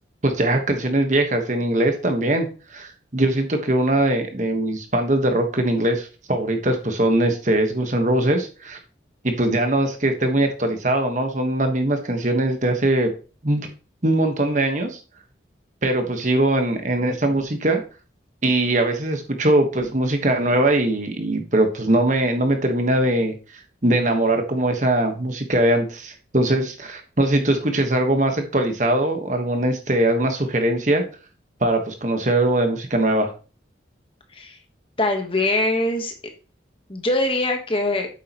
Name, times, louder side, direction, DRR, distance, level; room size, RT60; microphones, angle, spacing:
voice 1, 0.2-8.8 9.2-13.1 13.4-13.7 14.0-15.0 15.8-17.8 18.4-23.4 23.8-31.0 31.6-33.3, right 1 dB, 40° right, 5 dB, 1.4 m, -21 dB
voice 2, 35.0-36.1 36.9-38.1, left 2 dB, 30° left, 5 dB, 1.3 m, -22 dB
8.5 x 7.5 x 3.0 m, 0.34 s
head